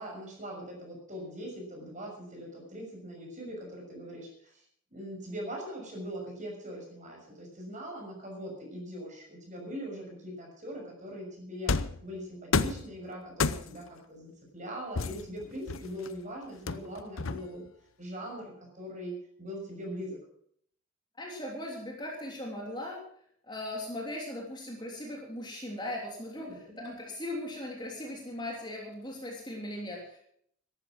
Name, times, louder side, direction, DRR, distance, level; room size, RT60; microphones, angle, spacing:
voice 1, 0.0-4.5 4.9-11.7 12.0-17.6 18.0-20.2 26.4-26.8, equal, 35° right, 0 dB, 6.3 m, -41 dB
sound 1, 11.7-12.0 12.5-12.9 13.4-13.9 15.0-16.1 16.7-17.7, left 4 dB, 65° left, 0.8 m, -30 dB
voice 2, 21.2-23.0 23.5-30.2, left 1 dB, 20° left, -1 dB, 3.1 m, -38 dB
14.5 x 12.0 x 6.2 m, 0.64 s
head